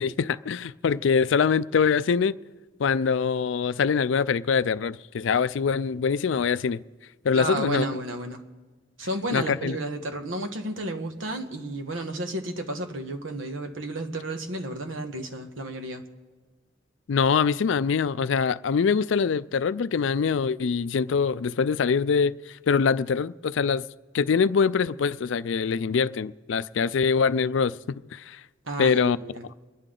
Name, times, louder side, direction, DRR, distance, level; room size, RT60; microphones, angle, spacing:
voice 1, 0.0-2.4 2.8-6.8 7.2-7.9 9.3-9.8 17.1-23.9 24.1-27.7 28.1-28.4 28.8-29.2, left 6 dB, 70° left, 0.4 m, -24 dB
voice 2, 7.3-8.4 9.0-16.0 28.6-29.5, right 1 dB, 80° right, 1.4 m, -32 dB
28.0 x 11.0 x 3.8 m
head